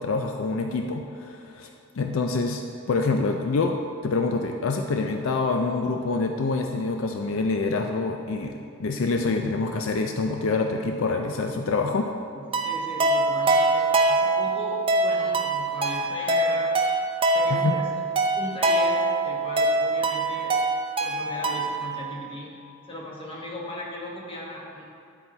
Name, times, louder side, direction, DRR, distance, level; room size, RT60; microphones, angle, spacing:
voice 1, 0.0-1.7 2.0-3.8 4.0-12.1 17.5-17.7, left 3 dB, 70° left, 4 dB, 0.4 m, -26 dB
voice 2, 12.3-16.7 17.3-17.9 18.3-20.6 21.0-22.6 22.9-24.8, left 1 dB, 25° left, -4 dB, 1.2 m, -37 dB
sound 1, 12.5-21.9, right 2 dB, 25° right, 0.5 m, -24 dB
10.0 x 4.1 x 4.3 m, 2.5 s
head